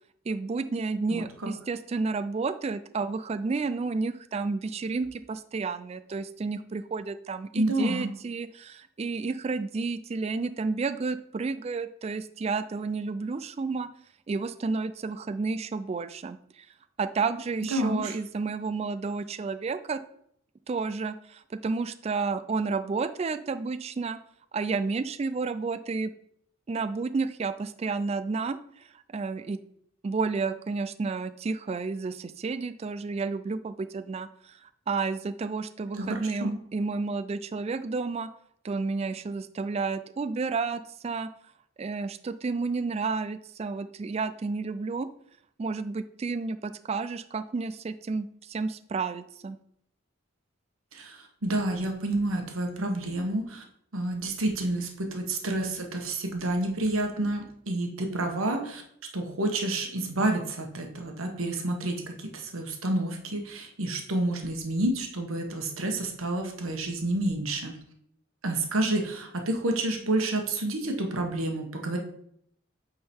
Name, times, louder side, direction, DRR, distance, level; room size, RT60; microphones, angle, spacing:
voice 1, 0.3-13.9 14.3-16.7 17.0-20.0 20.7-24.2 24.5-26.1 26.7-28.9 29.1-29.6 30.0-38.3 38.6-41.3 41.8-45.1 45.6-49.6, right 4 dB, 30° right, 13 dB, 0.3 m, -31 dB
voice 2, 1.1-1.5 7.5-8.1 17.7-18.2 35.9-36.6 50.9-53.6 53.9-58.8 59.1-67.8 68.4-72.0, right 1 dB, 85° right, 3 dB, 1.2 m, -29 dB
8.4 x 3.8 x 4.4 m, 0.69 s
head